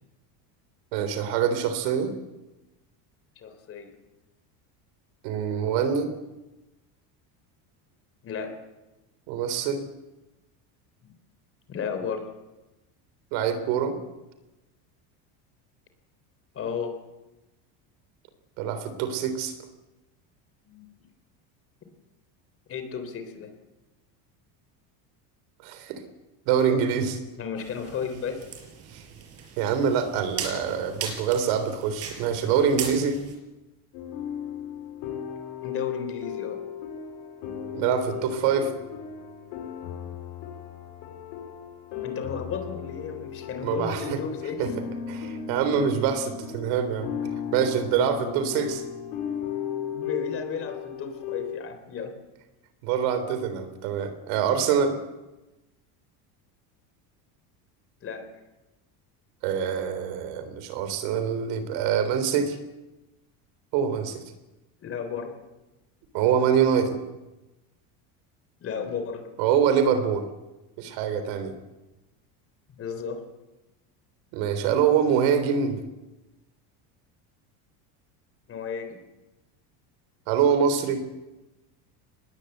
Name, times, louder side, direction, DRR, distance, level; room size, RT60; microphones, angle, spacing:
voice 1, 0.9-2.1 5.2-6.1 9.3-9.8 13.3-14.0 18.6-19.5 25.6-26.0 26.5-27.2 28.9-29.0 29.6-33.2 37.7-38.7 43.6-44.2 44.6-44.7 45.1-47.1 47.5-48.8 52.8-55.0 59.4-62.6 63.7-64.2 66.1-67.0 69.4-70.2 70.8-71.5 74.3-75.8 80.3-81.0, right 7 dB, 65° right, 10 dB, 3.8 m, -25 dB
voice 2, 3.4-3.9 8.2-8.5 11.0-11.1 11.7-12.3 16.5-16.9 20.7-20.9 22.7-23.5 27.4-28.4 35.6-36.6 42.0-44.7 49.9-52.1 58.0-58.3 64.8-65.3 68.6-69.3 72.7-73.2 78.5-79.0, left 6 dB, 30° left, 7 dB, 3.7 m, -33 dB
sound 1, 27.6-33.4, right 6 dB, 35° right, 5.0 m, -38 dB
sound 2, 33.9-51.6, left 8 dB, 60° left, 5.0 m, -36 dB
25.0 x 20.5 x 8.0 m, 1.0 s
cardioid pair, 165°, 45 cm